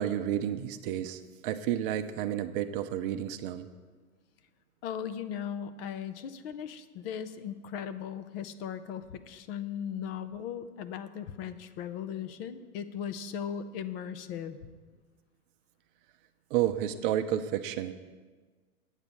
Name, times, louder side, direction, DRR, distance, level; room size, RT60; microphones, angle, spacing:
voice 1, 0.0-3.7 16.5-17.9, right 11 dB, 40° right, 9 dB, 0.6 m, -31 dB
voice 2, 4.8-14.6, left 8 dB, 40° left, 11 dB, 0.7 m, -38 dB
9.0 x 8.0 x 6.9 m, 1.4 s
hypercardioid pair, 105°, 44 cm